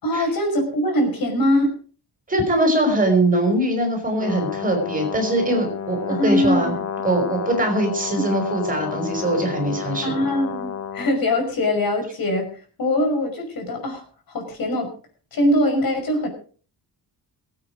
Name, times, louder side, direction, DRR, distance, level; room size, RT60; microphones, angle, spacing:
voice 1, 0.0-1.7 6.1-6.8 10.0-12.5 12.8-14.9 15.3-16.3, left 1 dB, 60° left, 3 dB, 5.7 m, -22 dB
voice 2, 2.3-6.7 7.0-10.1, right 1 dB, 20° right, 3 dB, 5.5 m, -22 dB
Brass instrument, 4.2-11.2, left 7 dB, 40° left, 1.1 m, -30 dB
22.5 x 9.0 x 5.0 m, 0.41 s
wide cardioid pair, 175°, 39 cm